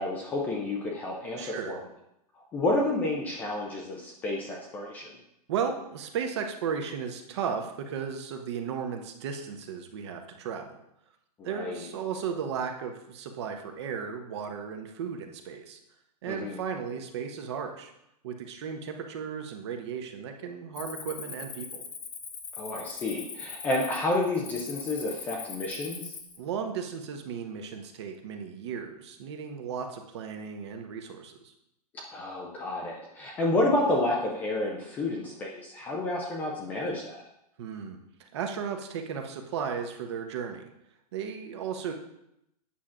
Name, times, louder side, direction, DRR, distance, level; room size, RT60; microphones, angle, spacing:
voice 1, 0.0-1.8 2.5-5.1 11.4-11.9 16.3-16.6 22.6-26.1 32.1-37.2, left 2 dB, 10° left, -2 dB, 0.3 m, -30 dB
voice 2, 1.4-1.8 5.5-10.7 11.4-15.8 16.2-17.9 18.2-21.8 26.4-31.5 37.6-40.6 41.1-41.9, right 7 dB, 45° right, 5 dB, 0.8 m, -35 dB
Cricket, 20.8-26.4, left 6 dB, 85° left, 1.4 m, -41 dB
8.6 x 5.7 x 2.4 m, 0.82 s
hypercardioid pair, 155°, 20 cm